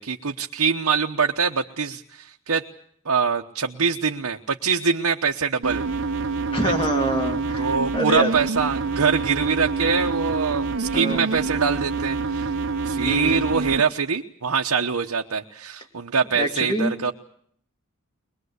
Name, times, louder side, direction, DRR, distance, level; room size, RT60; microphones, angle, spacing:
voice 1, 0.0-2.6 3.0-5.8 6.6-6.7 7.6-12.5 12.8-17.1, right 5 dB, 85° right, 2 dB, 1.1 m, -24 dB
sound 1, 5.6-13.8, right 3 dB, 60° right, 0.9 m, -27 dB
voice 2, 6.5-8.3 10.9-11.2 13.0-13.5 16.3-16.9, right 1 dB, 25° left, 3 dB, 3.1 m, -26 dB
22.5 x 22.0 x 8.1 m, 0.65 s
head